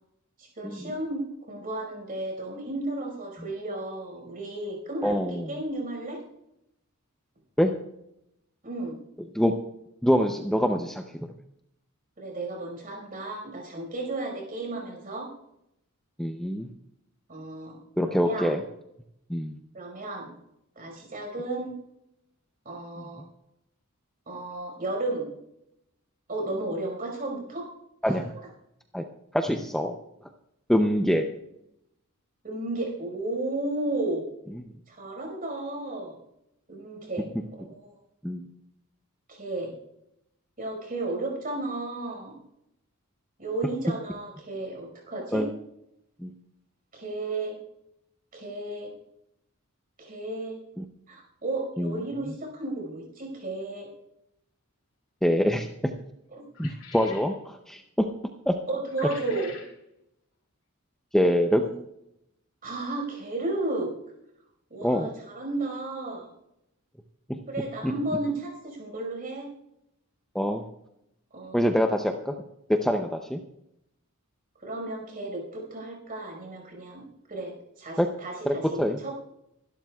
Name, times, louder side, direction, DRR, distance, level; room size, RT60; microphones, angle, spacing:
voice 1, 0.4-6.2 8.6-8.9 12.2-15.3 17.3-17.8 18.0-18.5 19.7-20.3 20.7-21.7 22.6-23.2 24.3-25.3 26.3-27.7 28.0-28.2 32.4-34.2 34.9-36.2 36.7-37.3 37.6-37.9 39.3-39.7 40.6-42.4 43.4-45.5 46.9-47.6 48.3-48.9 50.0-50.6 51.1-53.9 56.3-56.4 58.7-59.6 61.6-61.7 62.6-63.9 64.7-66.3 67.5-69.5 71.3-71.6 74.6-79.1, right 2 dB, 40° right, 1 dB, 5.0 m, -33 dB
voice 2, 5.0-5.5 7.6-7.7 9.3-9.5 10.0-11.3 16.2-16.7 18.0-18.6 19.3-19.6 28.0-28.3 28.9-29.0 29.3-29.9 30.7-31.3 38.2-38.5 45.3-45.5 46.2-46.3 50.8-50.9 51.8-52.0 55.2-55.7 56.6-58.1 58.5-58.6 61.1-61.6 64.8-65.1 67.3-67.4 67.8-67.9 70.3-70.6 71.5-72.4 72.7-73.4 78.0-78.1 78.5-79.0, equal, ahead, 3 dB, 0.6 m, -25 dB
sound 1, 56.5-57.3 58.9-59.7, left 6 dB, 75° left, 3.4 m, -45 dB
24.5 x 12.0 x 2.4 m, 0.82 s
head